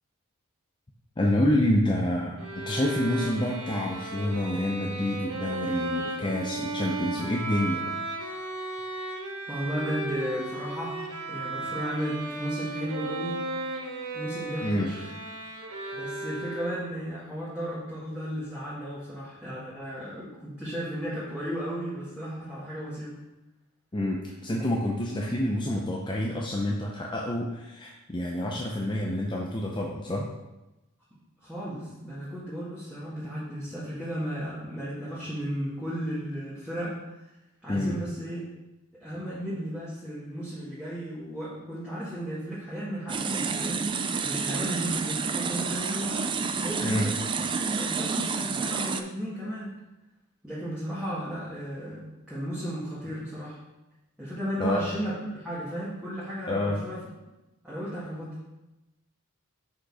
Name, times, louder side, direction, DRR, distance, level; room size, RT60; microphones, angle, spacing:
voice 1, 1.2-7.9 14.6-14.9 23.9-30.3 37.7-38.0 46.8-47.1 54.6-54.8 56.5-56.8, left 1 dB, 20° left, -2 dB, 0.6 m, -28 dB
Bowed string instrument, 2.4-17.0, right 2 dB, 85° right, 1.4 m, -35 dB
voice 2, 9.5-11.0 11.3-13.4 14.1-15.1 15.9-23.2 31.4-37.0 37.6-38.4 39.0-49.7 50.4-53.6 54.2-57.0 57.6-58.4, equal, 5° right, -11 dB, 1.7 m, -34 dB
sound 1, 43.1-49.0, right 5 dB, 20° right, 0.3 m, -29 dB
6.5 x 5.2 x 4.9 m, 0.99 s
head